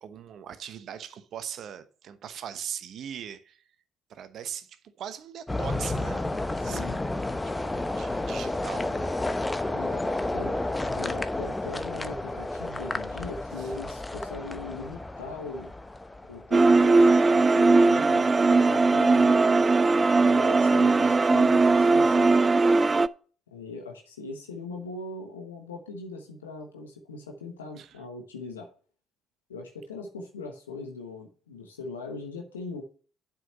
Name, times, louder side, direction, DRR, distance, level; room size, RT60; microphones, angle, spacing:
voice 1, 0.0-3.7 4.1-6.3 6.6-6.9 7.6-9.1 13.6-13.7 27.8-28.0, right 9 dB, 60° right, 1.0 m, -40 dB
sound 1, 5.5-16.7, left 2 dB, 15° left, 0.8 m, -31 dB
voice 2, 6.6-7.0 9.7-10.6 10.9-15.7 16.3-19.3 20.2-22.4 23.5-28.7 29.5-32.8, left 3 dB, 90° left, 1.1 m, -40 dB
sound 2, 16.5-23.1, right 3 dB, 30° right, 0.4 m, -19 dB
7.6 x 5.8 x 6.8 m
hypercardioid pair, 50°, 0 cm